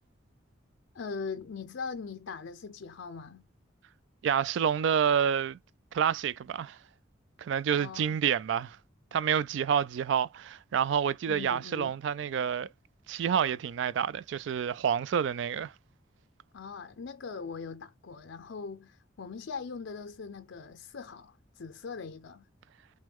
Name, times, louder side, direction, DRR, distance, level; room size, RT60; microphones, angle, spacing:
voice 1, 0.9-3.5 7.7-8.2 11.3-12.0 16.5-22.4, left 5 dB, 75° left, 0.5 m, -41 dB
voice 2, 4.2-5.6 5.9-6.8 7.4-8.8 9.1-12.7 13.1-15.7, right 8 dB, 70° right, 0.3 m, -28 dB
6.1 x 2.2 x 3.5 m
head